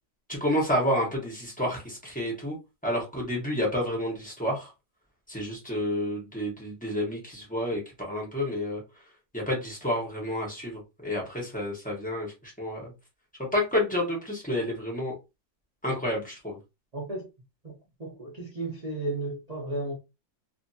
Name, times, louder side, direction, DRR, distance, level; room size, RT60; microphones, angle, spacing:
voice 1, 0.3-2.6 2.8-4.7 5.3-8.8 9.3-12.9 13.4-15.1 15.8-16.6, left 1 dB, 10° left, 0.6 m, -29 dB
voice 2, 16.9-17.3 17.6-19.9, right 2 dB, 65° right, 0.3 m, -34 dB
2.7 x 2.7 x 2.7 m
omnidirectional pair, 2.1 m